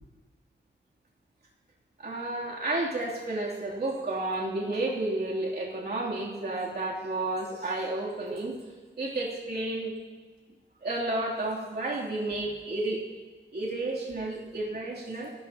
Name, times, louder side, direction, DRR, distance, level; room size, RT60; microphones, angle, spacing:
voice 1, 2.0-8.6 9.0-10.0 10.8-13.0 13.5-15.3, right 2 dB, 55° right, -5 dB, 3.1 m, -31 dB
26.0 x 13.5 x 2.9 m, 1.4 s
cardioid pair, 70°, 20 cm